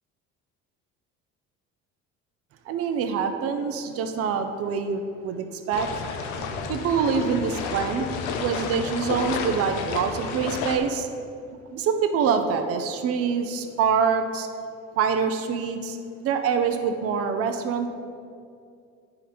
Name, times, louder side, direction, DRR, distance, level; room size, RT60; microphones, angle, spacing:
voice 1, 2.7-5.9 6.4-8.1 8.4-11.1 11.7-14.5 15.0-17.9, right 6 dB, 50° right, 6 dB, 0.5 m, -25 dB
sound 1, 5.7-10.8, left 5 dB, 90° left, 0.7 m, -31 dB
9.8 x 3.8 x 4.3 m, 2.4 s
cardioid pair, 125°, 29 cm